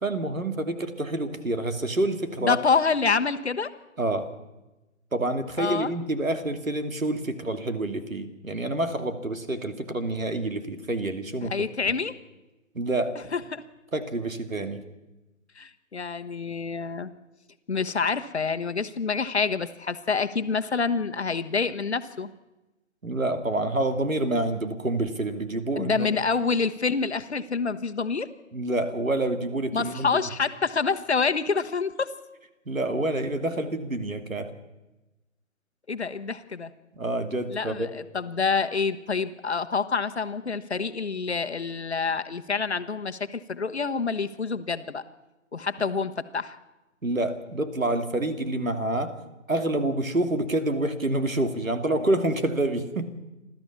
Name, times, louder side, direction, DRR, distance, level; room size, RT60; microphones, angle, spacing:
voice 1, 0.0-2.6 4.0-4.3 5.1-11.9 12.7-13.2 13.9-14.8 23.0-26.2 28.5-30.3 32.7-34.5 36.9-37.9 47.0-49.1 49.5-53.1, right 2 dB, 75° right, 8 dB, 2.5 m, -27 dB
voice 2, 2.4-3.7 5.6-5.9 11.4-12.1 13.3-13.6 15.6-17.1 17.7-22.3 25.7-28.3 29.7-32.1 35.9-36.7 37.5-37.9 38.1-45.0 45.5-46.6, left 5 dB, 55° left, 10 dB, 1.2 m, -27 dB
29.5 x 13.5 x 7.2 m, 1.0 s
figure-of-eight pair, 150°, 40 cm